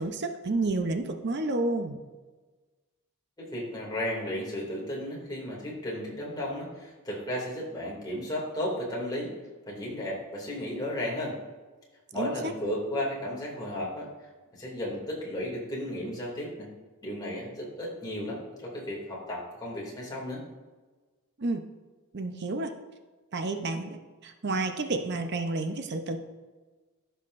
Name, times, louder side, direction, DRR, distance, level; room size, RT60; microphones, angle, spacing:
voice 1, 0.0-2.0 12.2-12.5 21.4-21.6 22.1-22.7 23.3-26.2, right 2 dB, 50° right, 6 dB, 0.6 m, -30 dB
voice 2, 3.4-9.4 9.7-11.4 12.1-14.1 14.5-16.7 17.0-20.4, left 1 dB, 20° left, -4 dB, 2.4 m, -34 dB
14.5 x 5.7 x 2.5 m, 1.3 s
head